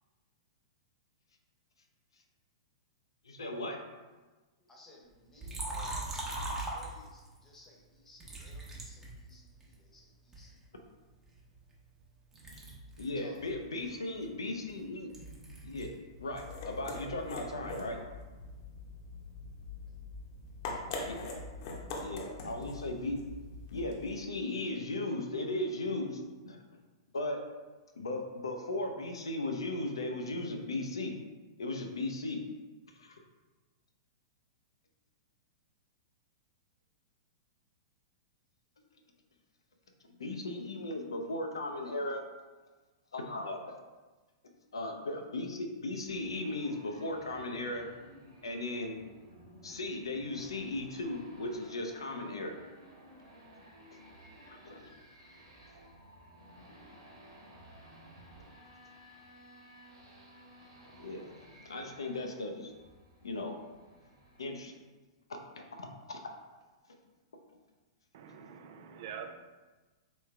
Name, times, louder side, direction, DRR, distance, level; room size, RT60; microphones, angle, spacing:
voice 1, 3.2-3.8 13.0-15.1 15.6-15.9 16.2-18.0 21.0-21.2 22.0-23.2 23.7-26.6 27.1-27.4 28.0-31.1 31.6-32.4 33.0-33.2 40.2-42.2 43.1-43.7 44.7-47.8 48.4-49.0 49.6-52.5 54.5-54.9 61.0-61.3 61.6-62.7 63.2-63.5 64.4-64.7 65.3-66.2, left 2 dB, 80° left, 3 dB, 0.5 m, -37 dB
voice 2, 4.6-10.6 13.1-13.4, left 2 dB, 15° left, -3 dB, 1.0 m, -59 dB
Liquid, 5.4-7.4 8.2-9.7 10.3-12.1 12.3-16.0 16.3-17.9, right 2 dB, 15° right, 0.9 m, -42 dB
sound 1, 16.0-24.2, left 2 dB, 50° left, 0.8 m, -43 dB
sound 2, 46.1-64.4, equal, 80° right, 1.0 m, -56 dB
voice 3, 68.1-69.3, right 7 dB, 55° right, 5 dB, 0.4 m, -45 dB
3.5 x 3.1 x 3.3 m, 1.2 s
figure-of-eight pair, 105°, 3 cm